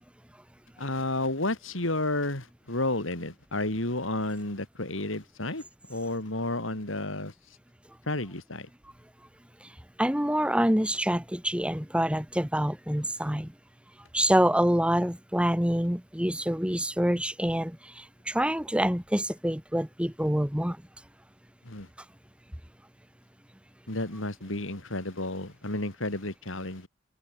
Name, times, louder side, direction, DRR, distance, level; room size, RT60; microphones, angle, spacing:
voice 1, 0.8-5.6 5.9-7.3 8.1-8.7 21.6-21.9 23.9-26.9, left 2 dB, 80° left, 4.3 m, -31 dB
voice 2, 10.0-13.5 14.1-20.8, equal, 5° right, 2.5 m, -26 dB
head